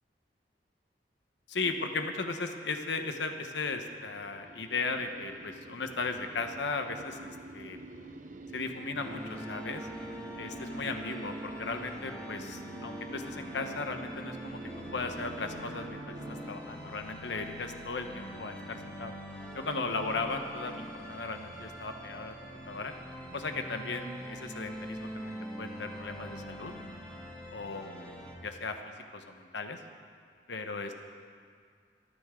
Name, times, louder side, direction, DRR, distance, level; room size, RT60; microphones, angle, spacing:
voice 1, 1.5-7.8 8.5-9.9 10.4-14.6 14.9-16.2 16.5-19.2 19.5-22.9 23.3-26.7 27.5-28.1 28.4-28.8 29.1-29.8 30.5-30.9, left 3 dB, 85° left, 5 dB, 1.2 m, -36 dB
sound 1, 3.5-16.5, right 2 dB, 45° right, 0.8 m, -47 dB
sound 2, 9.0-28.3, equal, 5° left, 2.3 m, -43 dB
24.0 x 13.5 x 3.8 m, 2.1 s
head